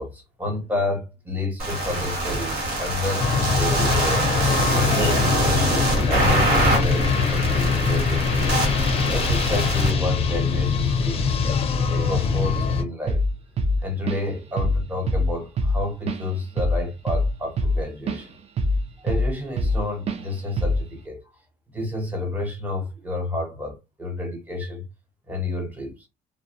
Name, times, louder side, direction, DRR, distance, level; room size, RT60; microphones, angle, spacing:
voice 1, 0.0-4.3 4.7-8.7 9.1-11.6 11.9-13.2 13.8-18.3 19.0-21.2 21.7-24.8 25.3-26.1, left 2 dB, 10° right, 0.9 m, -30 dB
sound 1, 1.6-9.9, right 1 dB, 70° right, 1.3 m, -24 dB
sound 2, 3.2-12.8, left 5 dB, 35° left, 0.5 m, -23 dB
Drum kit / Drum, 13.1-13.3 13.6-14.3 14.6-14.8 15.1-18.2 18.6-19.8 20.1-20.2 20.6-20.9, left 1 dB, 40° right, 0.5 m, -23 dB
2.2 x 2.1 x 2.7 m
cardioid pair, 110°, 17 cm